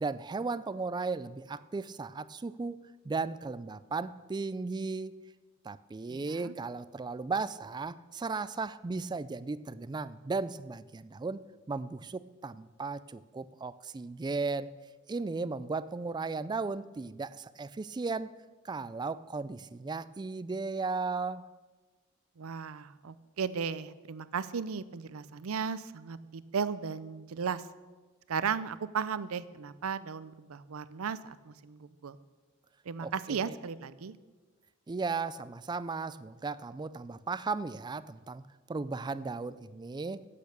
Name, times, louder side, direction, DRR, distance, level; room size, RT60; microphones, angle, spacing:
voice 1, 0.0-5.2 5.6-14.7 15.1-18.3 18.6-21.4 33.0-33.5 34.9-40.3, right 4 dB, 20° right, 17 dB, 0.3 m, -36 dB
voice 2, 6.1-6.5 22.4-27.6 28.3-32.2 32.9-34.2, right 6 dB, 85° right, 16 dB, 0.5 m, -35 dB
10.5 x 8.6 x 6.7 m, 1.3 s
head